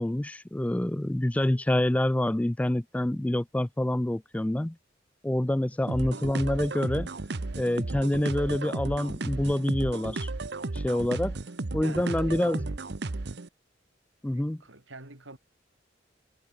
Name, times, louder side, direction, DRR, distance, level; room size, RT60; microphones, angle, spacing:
voice 1, 0.0-4.8 5.2-7.1 7.6-10.3 10.7-11.4 11.7-12.6 14.2-14.6, left 1 dB, 5° left, 0.3 m, -27 dB
sound 1, 5.9-13.5, right 2 dB, 60° right, 0.9 m, -34 dB
voice 2, 11.8-12.8 14.3-15.4, right 2 dB, 90° right, 5.0 m, -46 dB
head